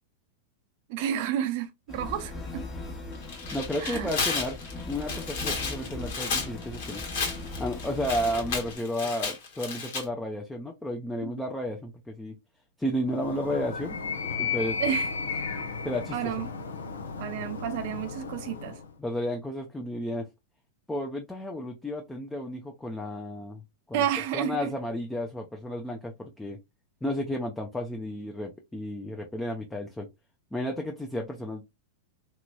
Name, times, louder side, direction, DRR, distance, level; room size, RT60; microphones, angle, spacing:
voice 1, 0.9-2.7 3.8-4.1 11.2-11.3 14.8-15.1 16.1-16.5 17.2-18.8 23.9-24.7, right 10 dB, 55° right, 0.6 m, -31 dB
sound 1, 1.9-8.8, left 2 dB, 30° left, 1.0 m, -39 dB
Tearing, 3.1-10.0, left 4 dB, 65° left, 1.3 m, -33 dB
voice 2, 3.5-7.0 7.6-12.4 12.8-14.1 14.4-14.8 15.8-16.3 19.0-20.3 20.9-23.6 23.9-24.1 24.3-26.6 27.0-30.1 30.5-31.6, left 1 dB, 10° left, 0.6 m, -32 dB
Animal, 13.1-18.9, left 5 dB, 85° left, 0.6 m, -34 dB
3.0 x 2.9 x 2.2 m
hypercardioid pair, 100°, 0 cm